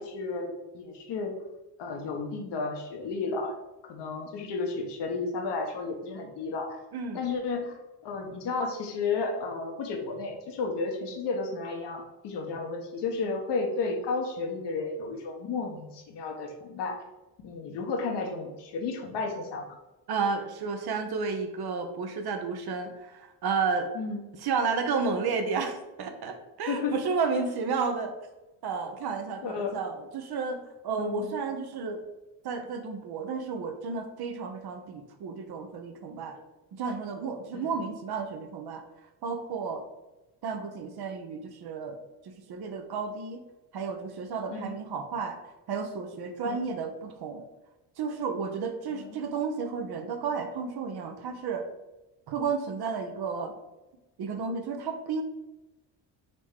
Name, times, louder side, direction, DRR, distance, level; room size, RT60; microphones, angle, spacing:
voice 1, 0.0-1.3 1.8-3.5 3.9-6.8 7.1-7.7 8.0-17.0 17.4-19.8 23.9-24.2 26.7-27.0 29.4-29.8 31.0-31.4 37.5-37.7 44.5-44.8 46.4-46.6 48.9-49.2, left 4 dB, 65° left, 3 dB, 1.2 m, -32 dB
voice 2, 6.9-7.2 20.1-23.9 24.4-28.1 28.6-30.6 30.8-32.0 32.4-36.4 36.7-38.8 39.2-39.8 40.4-41.9 42.3-43.4 43.7-45.4 45.7-47.4 48.0-51.7 52.3-53.6 54.2-55.2, right 5 dB, 55° right, 6 dB, 0.9 m, -32 dB
4.2 x 3.0 x 3.6 m, 1.0 s
supercardioid pair, 70°, 45 cm